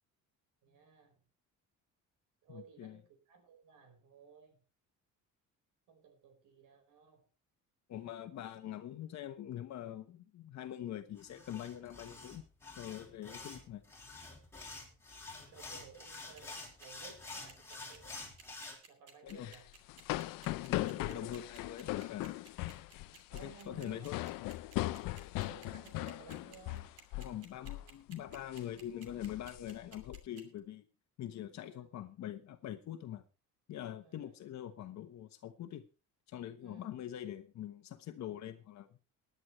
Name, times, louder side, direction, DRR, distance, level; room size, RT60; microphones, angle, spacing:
voice 1, 0.6-1.1 2.4-4.6 5.9-7.3 15.5-18.1 18.9-19.7 20.9-21.3 23.3-24.1 25.5-26.9 31.7-31.8 34.0-34.3 36.6-37.0, right 7 dB, 70° right, 7 dB, 4.6 m, -57 dB
voice 2, 2.5-3.0 7.9-12.4 12.8-13.8 19.2-19.5 20.6-22.5 23.3-24.2 27.2-30.9 31.2-33.2 33.7-35.9 36.3-39.0, left 11 dB, 55° left, 9 dB, 1.2 m, -44 dB
sound 1, 11.2-18.7, left 3 dB, 10° left, 4.5 m, -49 dB
sound 2, 16.1-30.6, right 5 dB, 50° right, 2.8 m, -56 dB
sound 3, 19.3-27.4 27.6-27.9 28.3-28.6 29.1-30.2, left 17 dB, 85° left, 0.7 m, -39 dB
19.5 x 10.5 x 3.1 m, 0.31 s
cardioid pair, 140°, 32 cm